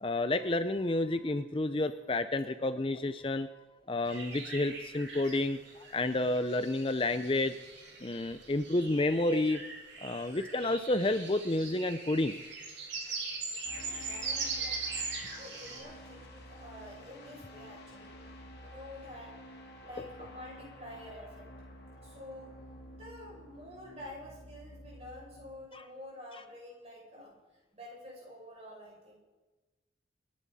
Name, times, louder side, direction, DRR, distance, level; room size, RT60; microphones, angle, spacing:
voice 1, 0.0-3.5 3.9-7.5 8.0-9.6 10.0-12.3 25.7-25.8, left 2 dB, 30° left, 10 dB, 0.5 m, -30 dB
sound 1, 4.1-15.8, right 4 dB, 75° right, 5.7 m, -41 dB
sound 2, 13.6-25.7, equal, 55° left, 3.2 m, -51 dB
voice 2, 13.7-14.9 15.3-18.1 18.6-19.4 19.8-21.5 22.0-22.6 22.9-29.2, left 1 dB, 35° right, -3 dB, 6.7 m, -49 dB
28.0 x 11.0 x 4.2 m, 1.2 s
head